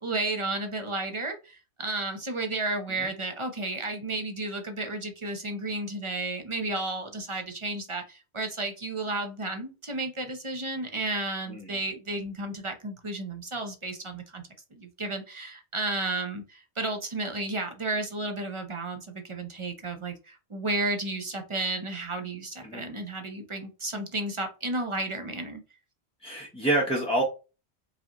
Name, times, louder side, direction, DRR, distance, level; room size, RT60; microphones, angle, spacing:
voice 1, 0.0-14.4 14.7-25.6, right 2 dB, 35° right, 5 dB, 0.6 m, -32 dB
voice 2, 26.2-27.2, right 1 dB, 5° left, -4 dB, 0.7 m, -27 dB
4.9 x 2.8 x 2.9 m, 0.31 s
omnidirectional pair, 1.1 m